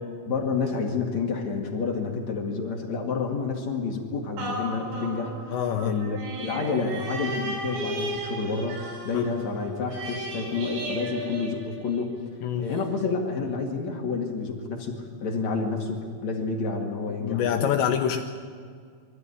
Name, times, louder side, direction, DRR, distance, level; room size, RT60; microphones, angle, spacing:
voice 1, 0.2-12.1 12.6-17.7, left 4 dB, 50° left, 0 dB, 2.3 m, -29 dB
sound 1, 4.4-12.2 12.7-12.8, right 1 dB, 70° right, 6.1 m, -35 dB
voice 2, 5.5-6.0 9.1-9.2 12.4-12.7 17.2-18.2, left 9 dB, 80° left, 5 dB, 2.7 m, -26 dB
24.0 x 14.5 x 9.8 m, 2.1 s
omnidirectional pair, 5.9 m